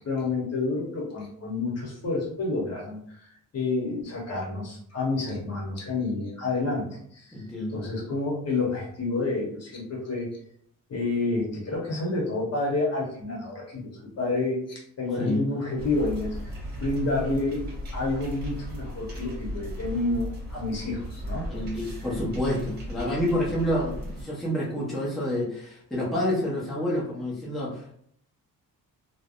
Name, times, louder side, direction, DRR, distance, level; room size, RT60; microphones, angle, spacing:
voice 1, 0.0-7.4 7.7-10.3 10.9-14.6 15.0-17.6 17.9-21.4, left 3 dB, 45° left, -2 dB, 1.0 m, -29 dB
voice 2, 7.3-7.8 15.2-15.4 21.5-28.0, left 1 dB, ahead, -6 dB, 0.6 m, -28 dB
sound 1, 15.8-24.2, equal, 30° right, 1.0 m, -36 dB
3.2 x 2.0 x 2.4 m, 0.66 s
cardioid pair, 145°, 35 cm